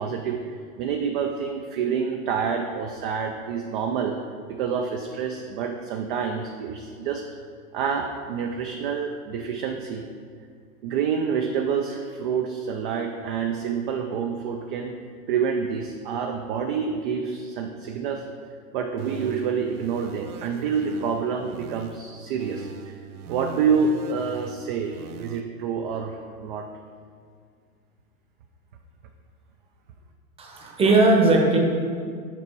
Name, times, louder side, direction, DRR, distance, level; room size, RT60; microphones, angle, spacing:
voice 1, 0.0-4.1 4.5-7.2 7.7-10.1 10.8-14.9 15.3-18.3 18.7-23.0 23.3-26.7, right 6 dB, 40° right, 4 dB, 0.4 m, -27 dB
sound 1, 19.0-22.0 22.4-25.4, right 6 dB, 85° right, 0.6 m, -41 dB
voice 2, 30.4-31.6, right 2 dB, 15° right, 0 dB, 0.9 m, -18 dB
5.9 x 5.0 x 4.6 m, 2.1 s
hypercardioid pair, 120°, 44 cm